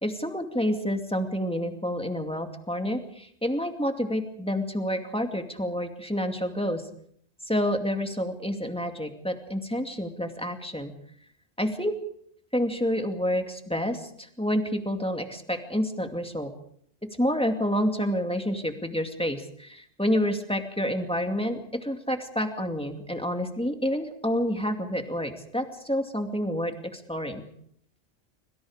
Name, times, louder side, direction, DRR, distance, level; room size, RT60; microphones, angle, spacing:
voice 1, 0.0-6.8 7.5-10.9 11.6-11.9 12.5-16.5 17.2-27.4, equal, 5° left, 5 dB, 2.4 m, -28 dB
26.0 x 25.5 x 5.0 m, 0.66 s
omnidirectional pair, 1.1 m